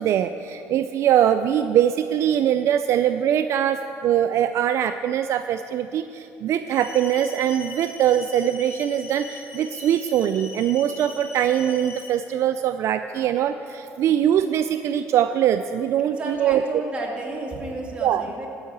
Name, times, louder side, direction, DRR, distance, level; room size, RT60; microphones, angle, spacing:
voice 1, 0.0-16.6 18.0-18.2, right 10 dB, 60° right, 9 dB, 0.3 m, -22 dB
sound 1, 6.7-12.1, left 5 dB, 60° left, 2.2 m, -41 dB
voice 2, 16.1-18.5, right 2 dB, 20° right, -2 dB, 2.3 m, -31 dB
12.5 x 5.5 x 8.4 m, 2.9 s
cardioid pair, 100°, 5 cm